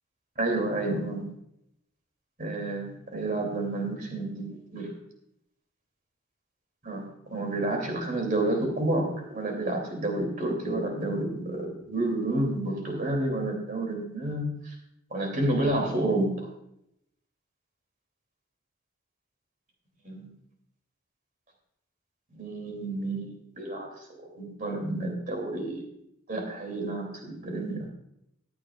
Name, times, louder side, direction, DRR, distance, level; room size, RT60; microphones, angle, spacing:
voice 1, 0.4-1.3 2.4-4.9 6.8-14.5 15.1-16.5 20.0-20.3 22.3-23.9 24.3-25.9 26.3-27.9, right 2 dB, 40° right, 1 dB, 3.2 m, -30 dB
19.5 x 9.7 x 2.5 m, 0.77 s
head